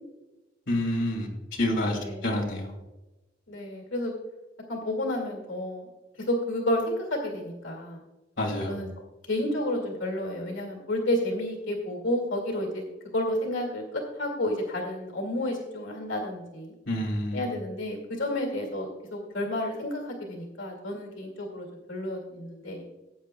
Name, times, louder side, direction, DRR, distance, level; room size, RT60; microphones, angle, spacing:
voice 1, 0.7-2.7 8.4-8.8 16.9-17.5, left 1 dB, 65° left, -1 dB, 2.3 m, -28 dB
voice 2, 3.5-4.1 4.7-5.9 6.3-8.0 8.7-8.9 9.3-12.8 13.1-16.7 17.3-22.8, left 1 dB, 85° left, 1 dB, 2.1 m, -31 dB
18.5 x 8.6 x 2.2 m, 1.1 s
head